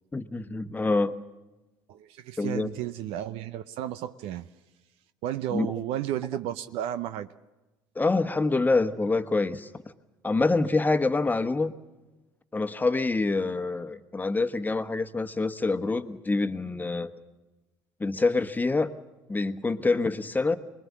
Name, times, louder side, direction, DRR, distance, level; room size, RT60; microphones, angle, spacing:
voice 1, 0.1-1.1 2.4-2.7 5.5-5.7 7.9-9.7 10.2-11.7 12.5-17.1 18.0-18.9 19.3-20.6, left 3 dB, 15° left, 9 dB, 1.3 m, -26 dB
voice 2, 1.9-4.5 5.2-7.3, right 12 dB, 70° right, 12 dB, 0.7 m, -33 dB
24.0 x 20.5 x 7.4 m, 1.1 s
hypercardioid pair, 70°, 10 cm